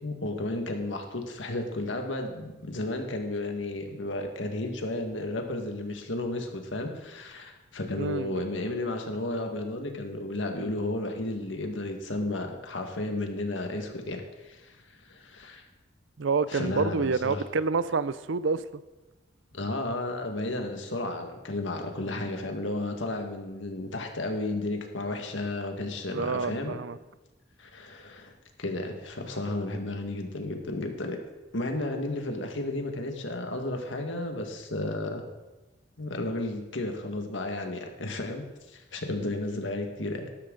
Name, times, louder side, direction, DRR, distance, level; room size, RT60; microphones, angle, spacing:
voice 1, 0.0-14.8 15.0-15.6 16.5-17.4 19.5-26.8 27.6-28.3 28.6-31.2 31.5-35.2 36.0-40.3, left 2 dB, 85° left, 1.8 m, -33 dB
voice 2, 8.0-8.4 16.2-18.6 26.1-27.0, right 4 dB, 85° right, 0.5 m, -28 dB
12.5 x 12.0 x 3.9 m
head